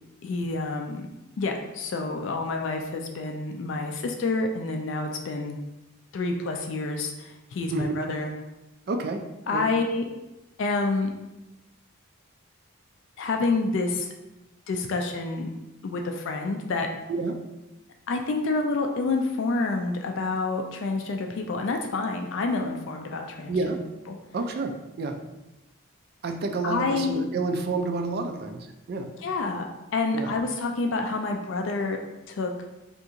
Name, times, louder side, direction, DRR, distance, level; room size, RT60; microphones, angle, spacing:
voice 1, 0.2-1.1 1.4-5.6 6.1-8.3 9.5-10.0 10.6-11.1 13.2-14.1 14.7-15.5 15.8-16.9 18.1-23.6 24.1-24.2 26.6-27.2 29.2-32.0 32.3-32.5, left 3 dB, 60° left, 3 dB, 0.3 m, -28 dB
voice 2, 8.9-9.2 9.5-9.7 17.1-17.4 23.5-23.8 24.3-25.2 26.2-28.6 28.9-29.1 30.1-30.3, right 3 dB, 45° right, 5 dB, 0.3 m, -29 dB
2.8 x 2.5 x 3.6 m, 0.98 s
head